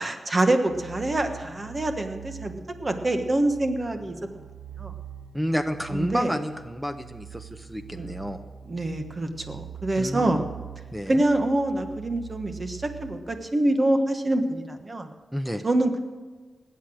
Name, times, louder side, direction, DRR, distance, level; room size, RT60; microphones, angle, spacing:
voice 1, 0.0-4.2 4.8-4.9 5.9-6.3 7.9-8.1 8.6-10.4 11.1-15.1 15.6-16.0, right 1 dB, 35° right, 6 dB, 1.4 m, -25 dB
sound 1, 0.7-13.2, right 9 dB, 65° right, 2.9 m, -43 dB
voice 2, 5.3-8.4 10.0-10.5 10.9-11.2 15.3-15.6, equal, 5° right, 8 dB, 0.7 m, -30 dB
19.0 x 8.3 x 6.4 m, 1.4 s
wide cardioid pair, 100°, 0 cm